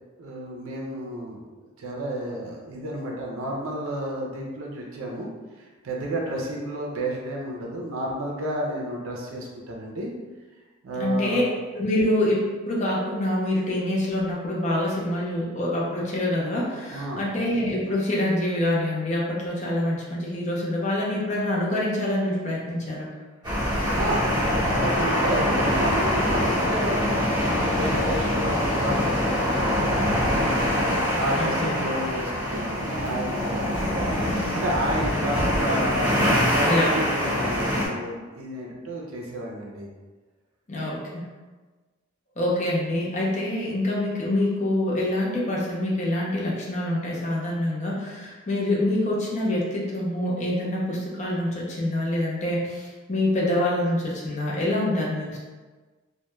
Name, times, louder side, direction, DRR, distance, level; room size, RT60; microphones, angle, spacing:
voice 1, 0.2-1.4 1.8-5.3 5.6-10.1 10.8-11.5 16.9-17.2 23.9-24.3 24.6-27.0 27.3-30.5 31.1-34.2 34.5-36.2 36.5-39.9, right 1 dB, 75° right, -1 dB, 0.5 m, -31 dB
voice 2, 10.9-11.4 11.7-23.1 31.3-31.8 36.7-37.1 40.7-41.2 42.4-55.4, left 1 dB, 35° left, -4 dB, 0.5 m, -26 dB
sound 1, 23.4-37.9, left 1 dB, 20° right, 0.9 m, -24 dB
2.2 x 2.1 x 2.9 m, 1.3 s
head